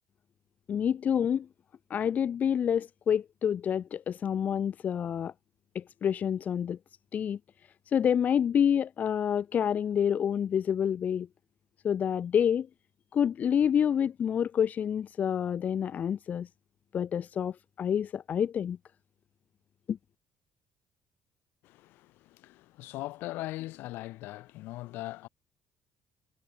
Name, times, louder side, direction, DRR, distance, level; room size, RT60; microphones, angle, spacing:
voice 1, 0.7-1.5 1.9-5.3 5.7-6.8 7.1-7.4 7.9-11.3 11.8-12.7 13.1-16.5 16.9-18.8 19.9-20.0, left 8 dB, 50° left, 0.9 m, -28 dB
voice 2, 21.6-25.3, left 18 dB, 80° left, 3.9 m, -40 dB
supercardioid pair, 80°, 4 cm